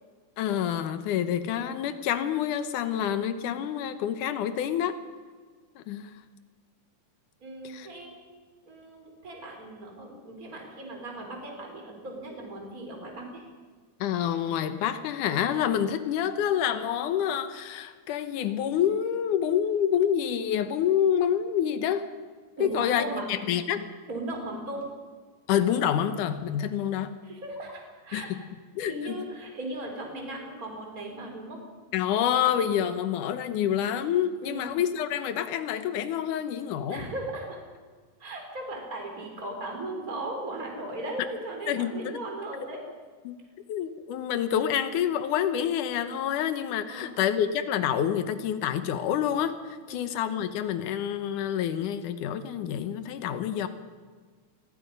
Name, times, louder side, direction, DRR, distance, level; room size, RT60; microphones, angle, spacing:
voice 1, 0.4-5.0 5.8-6.2 7.6-7.9 14.0-22.1 22.6-23.9 25.5-27.1 28.1-28.2 28.8-29.2 31.9-37.1 41.7-42.2 43.3-43.4 43.7-53.7, left 9 dB, 85° left, 9 dB, 2.6 m, -27 dB
voice 2, 7.4-8.1 8.7-13.4 22.6-23.3 24.1-24.9 27.2-28.3 28.9-31.6 34.4-34.7 36.9-37.6 38.2-42.8 46.9-47.1 49.9-50.1, right 1 dB, 25° right, 1 dB, 4.4 m, -37 dB
27.5 x 21.5 x 5.4 m, 1.5 s
omnidirectional pair, 3.6 m